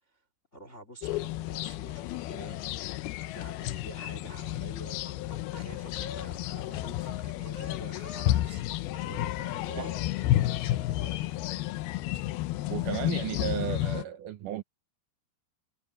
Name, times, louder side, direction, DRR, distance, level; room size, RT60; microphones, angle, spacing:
voice 1, 0.5-2.8 3.2-8.7 9.0-11.4, equal, 20° left, 2.8 m, -48 dB
sound 1, 1.0-14.0, left 15 dB, 80° left, 2.4 m, -31 dB
sound 2, 5.1-6.3 6.6-7.2 7.5-8.4 8.7-9.3 9.6-10.0, left 5 dB, 45° left, 4.7 m, -45 dB
voice 2, 12.7-14.6, right 11 dB, 75° right, 1.9 m, -34 dB
omnidirectional pair, 4.9 m